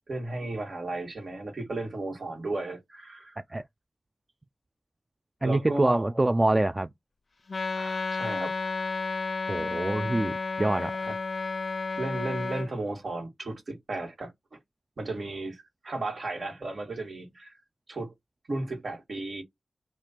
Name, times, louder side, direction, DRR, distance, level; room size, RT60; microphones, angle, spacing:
voice 1, 0.1-3.4 5.4-6.1 7.8-8.9 11.0-11.1 12.0-14.6 15.0-17.6 17.9-18.1 18.5-19.4, right 2 dB, 65° right, 1.7 m, -34 dB
voice 2, 5.4-6.9 9.5-10.9, right 2 dB, 25° right, 0.3 m, -25 dB
Wind instrument woodwind instrument, 7.5-12.7, left 4 dB, 55° left, 0.4 m, -32 dB
3.2 x 2.5 x 4.3 m
cardioid pair, 55°, 0 cm